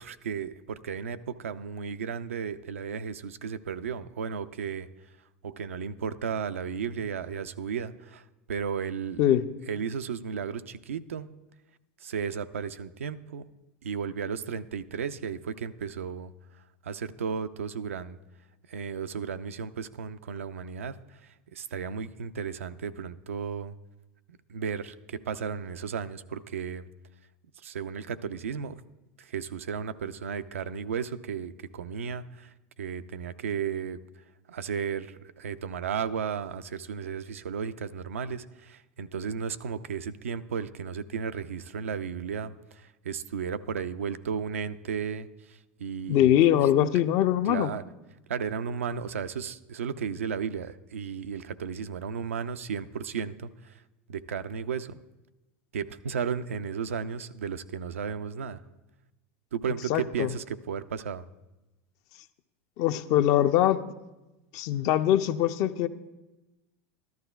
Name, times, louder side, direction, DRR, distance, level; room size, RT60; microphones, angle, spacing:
voice 1, 0.0-4.9 5.4-9.2 9.7-11.3 12.0-13.5 13.8-16.3 16.8-18.2 18.7-23.7 24.5-26.9 27.6-28.8 29.2-34.0 34.5-46.4 47.4-47.8 48.3-53.8 54.1-55.0 55.7-58.6 59.5-61.3, right 6 dB, 90° right, 11 dB, 0.4 m, -34 dB
voice 2, 46.1-47.7 59.9-60.3 62.8-63.8 64.5-65.9, left 11 dB, 55° left, 11 dB, 0.4 m, -22 dB
13.5 x 12.0 x 2.3 m, 1.0 s
hypercardioid pair, 95°, 7 cm